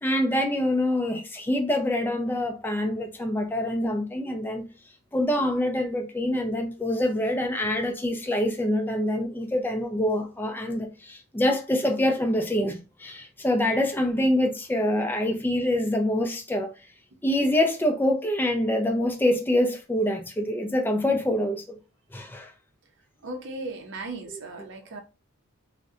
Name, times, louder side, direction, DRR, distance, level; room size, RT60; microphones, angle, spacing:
voice 1, 0.0-4.6 5.1-16.7 17.2-21.8 22.1-22.5, left 1 dB, 10° left, 0.4 m, -25 dB
voice 2, 23.2-25.0, right 2 dB, 55° right, 0.6 m, -36 dB
2.7 x 2.1 x 2.3 m
head